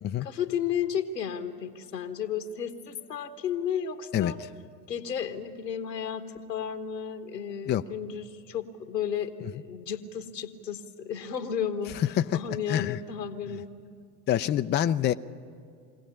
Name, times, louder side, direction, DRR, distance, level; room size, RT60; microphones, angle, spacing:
voice 1, 0.2-4.4 4.9-13.7, left 8 dB, 90° left, 8 dB, 1.4 m, -33 dB
voice 2, 12.7-13.0 14.3-15.1, left 11 dB, 25° left, 10 dB, 0.5 m, -25 dB
23.0 x 17.5 x 8.9 m, 2.3 s
hypercardioid pair, 75°, 48 cm